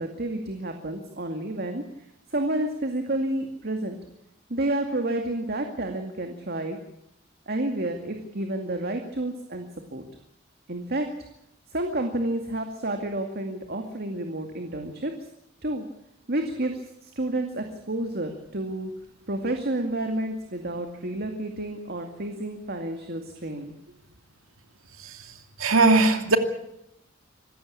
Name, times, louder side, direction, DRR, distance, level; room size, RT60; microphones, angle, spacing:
voice 1, 0.0-1.8 2.3-4.0 4.5-6.8 7.5-9.7 9.9-10.0 10.7-11.1 11.7-15.1 15.6-15.8 16.3-18.9 19.3-23.7, right 1 dB, 50° right, 5 dB, 2.2 m, -30 dB
voice 2, 25.6-26.4, right 3 dB, 85° right, 7 dB, 2.7 m, -19 dB
25.5 x 15.0 x 8.6 m, 0.80 s
head